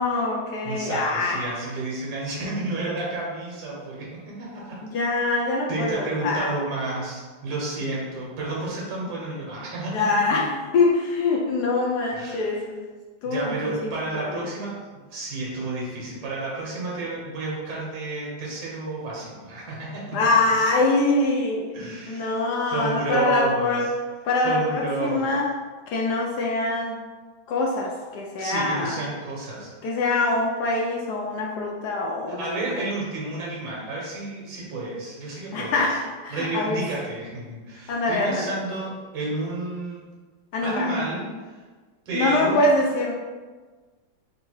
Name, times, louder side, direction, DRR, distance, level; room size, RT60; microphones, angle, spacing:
voice 1, 0.0-1.6 4.8-6.5 9.9-10.5 10.7-12.8 13.2-13.5 14.1-14.5 20.1-21.7 22.1-23.9 24.2-25.5 25.9-27.0 27.5-29.0 29.8-32.8 35.5-36.8 37.9-38.6 40.5-40.9 42.1-43.1, left 2 dB, 70° left, -1 dB, 1.0 m, -24 dB
voice 2, 0.6-4.8 5.7-10.4 12.1-12.5 13.3-14.8 15.1-20.3 21.7-22.4 22.7-23.8 24.4-25.3 28.4-29.7 32.4-35.8 36.3-40.0 40.6-41.3 42.1-42.6, right 2 dB, 70° right, -5 dB, 1.8 m, -31 dB
3.7 x 2.7 x 4.5 m, 1.4 s
omnidirectional pair, 2.1 m